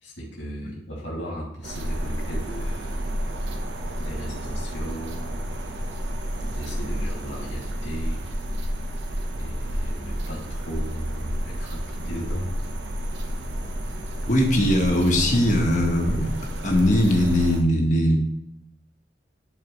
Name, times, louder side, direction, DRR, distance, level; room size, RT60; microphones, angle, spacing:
voice 1, 0.0-3.1 4.0-5.4 6.4-8.2 9.4-12.5, equal, 75° left, -5 dB, 2.5 m, -36 dB
sound 1, 1.6-17.6, equal, 70° right, 0.9 m, -30 dB
voice 2, 14.3-16.3 16.6-18.2, equal, 40° left, 1 dB, 1.3 m, -20 dB
11.5 x 4.5 x 3.1 m, 0.77 s
head